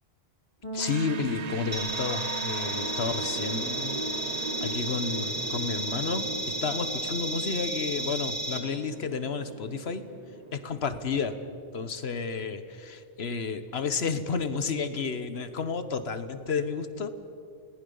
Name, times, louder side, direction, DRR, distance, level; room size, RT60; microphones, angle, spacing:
sound 1, 0.6-10.3, right 4 dB, 35° left, 3.4 m, -43 dB
voice 1, 0.7-6.3 6.6-10.1 10.5-11.3 11.7-17.1, left 5 dB, 75° left, 10 dB, 1.4 m, -31 dB
sound 2, 0.8-11.7, right 4 dB, 45° right, 0.7 m, -40 dB
sound 3, 1.7-8.6, right 1 dB, 85° right, 3.3 m, -33 dB
29.5 x 19.0 x 5.5 m, 2.6 s
omnidirectional pair, 1.1 m